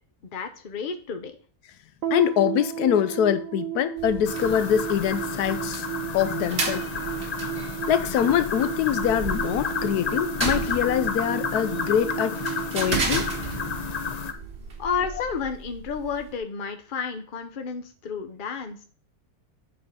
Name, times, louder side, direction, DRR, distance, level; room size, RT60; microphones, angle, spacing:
voice 1, 0.3-1.3 14.8-18.8, left 6 dB, 40° left, 0.8 m, -31 dB
sound 1, 2.0-14.5, right 14 dB, 65° right, 0.9 m, -34 dB
voice 2, 2.1-5.9 6.1-6.9 7.9-12.4 12.7-13.3, left 10 dB, 80° left, 1.1 m, -24 dB
sound 2, 4.0-16.4, right 3 dB, 45° right, 1.5 m, -35 dB
sound 3, 4.3-14.3, left 6 dB, 60° left, 0.4 m, -31 dB
7.4 x 4.3 x 5.4 m
omnidirectional pair, 1.7 m